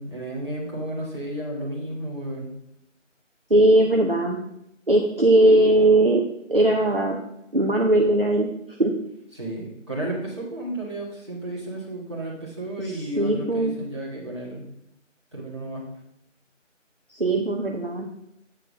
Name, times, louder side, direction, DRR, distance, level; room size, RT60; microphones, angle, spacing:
voice 1, 0.0-2.5 9.3-14.7 15.3-15.9, right 1 dB, 20° right, -8 dB, 1.8 m, -32 dB
voice 2, 3.5-4.4 4.9-6.2 6.5-7.2 7.5-8.5 8.8-8.9 12.8-13.8 17.1-18.1, right 1 dB, 45° right, 0 dB, 0.8 m, -19 dB
8.5 x 4.4 x 5.3 m, 0.79 s
figure-of-eight pair, 175°, 38 cm